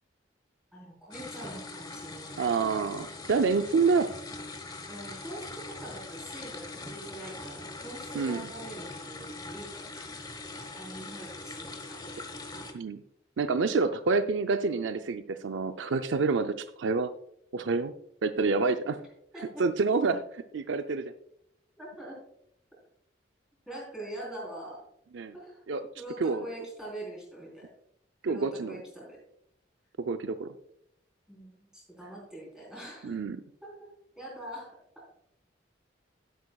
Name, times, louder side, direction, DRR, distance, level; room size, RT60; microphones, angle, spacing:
voice 1, 0.7-2.6 4.9-10.3 10.8-12.0 19.3-19.7 21.8-22.2 23.7-24.8 25.3-25.6 26.0-27.7 28.3-29.2 31.3-33.2 33.6-33.9 34.2-35.1, right 1 dB, 5° right, -4 dB, 3.8 m, -44 dB
sound 1, 1.1-12.7, left 2 dB, 20° left, 1.1 m, -42 dB
voice 2, 2.4-4.1 8.1-8.4 12.7-13.0 13.4-17.1 17.5-17.9 18.2-19.0 19.6-21.1 25.1-25.3 25.7-25.8 26.2-26.5 28.2-28.8 30.0-30.5 33.0-33.4, right 4 dB, 75° right, 9 dB, 0.5 m, -27 dB
11.0 x 11.0 x 2.3 m, 0.73 s
head